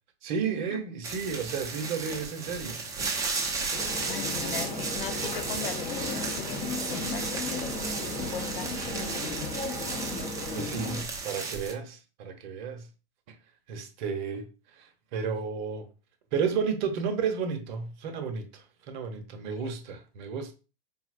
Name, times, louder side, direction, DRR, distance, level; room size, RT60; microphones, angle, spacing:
voice 1, 0.2-2.8 10.5-12.9 13.3-13.4 13.7-14.5 14.7-15.9 16.3-20.5, right 6 dB, 50° right, 0.7 m, -32 dB
sound 1, 1.0-11.7, right 4 dB, 10° right, 0.5 m, -34 dB
sound 2, 3.7-11.0, left 2 dB, 25° left, 0.7 m, -35 dB
voice 2, 4.1-7.8 8.2-8.7 9.2-9.5 19.5-19.7, left 9 dB, 65° left, 0.5 m, -39 dB
3.9 x 2.0 x 2.5 m
hypercardioid pair, 115°, 31 cm